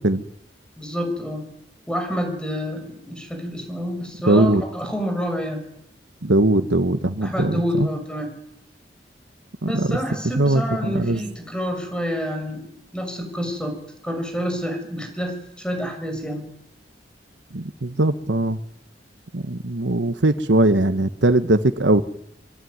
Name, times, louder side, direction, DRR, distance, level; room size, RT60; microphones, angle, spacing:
voice 1, 0.8-1.4 1.9-5.6 7.2-8.3 9.6-12.7 12.9-13.7 14.0-16.5, equal, 5° left, 5 dB, 6.4 m, -28 dB
voice 2, 4.3-4.6 6.2-7.9 9.6-10.0 10.4-11.2 17.5-18.6 19.3-22.0, right 2 dB, 80° right, 9 dB, 1.3 m, -20 dB
26.0 x 23.5 x 9.6 m, 0.79 s
head